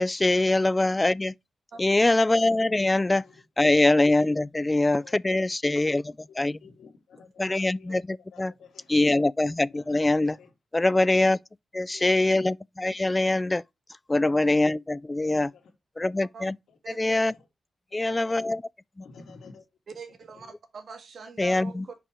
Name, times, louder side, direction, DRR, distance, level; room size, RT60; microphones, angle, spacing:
voice 1, 0.0-1.3 1.8-3.2 3.6-6.6 7.4-8.5 8.9-10.4 10.7-11.4 11.7-13.6 14.1-15.5 16.0-16.6 16.9-17.3 17.9-18.6 21.4-21.9, left 2 dB, 20° left, 0.3 m, -23 dB
voice 2, 1.7-2.1 5.7-5.8 16.3-16.5 16.8-17.3 18.0-18.2 19.9-21.9, right 5 dB, 65° right, 1.6 m, -43 dB
voice 3, 3.0-3.4 4.8-5.2 6.3-7.3 7.6-8.0 8.3-9.0 9.7-10.5 11.9-12.3 13.0-13.6 15.3-15.7 16.7-16.8 17.1-17.5 17.9-18.5 19.0-19.7 20.3-20.5 21.7-21.8, left 5 dB, 85° left, 2.2 m, -52 dB
5.7 x 5.3 x 4.6 m
cardioid pair, 80°, 0 cm